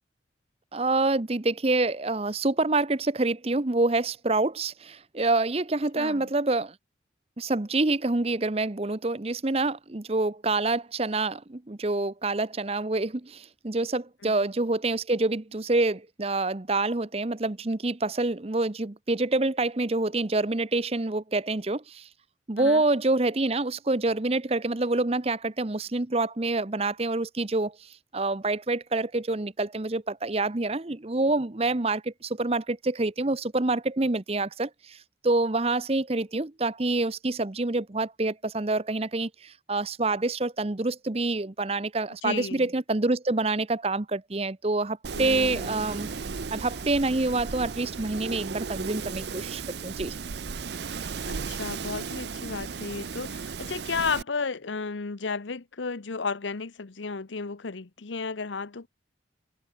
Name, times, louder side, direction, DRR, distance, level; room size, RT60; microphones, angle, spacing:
voice 1, 0.7-6.7 7.4-22.1 22.5-35.0 35.2-46.1 46.5-50.1, right 2 dB, 30° right, 0.8 m, -27 dB
voice 2, 6.0-6.3 14.2-14.4 22.6-22.8 42.2-42.7 45.1-45.8 51.3-58.9, left 4 dB, 80° left, 0.9 m, -33 dB
Wind, 45.0-54.2, right 5 dB, 65° right, 0.6 m, -35 dB
head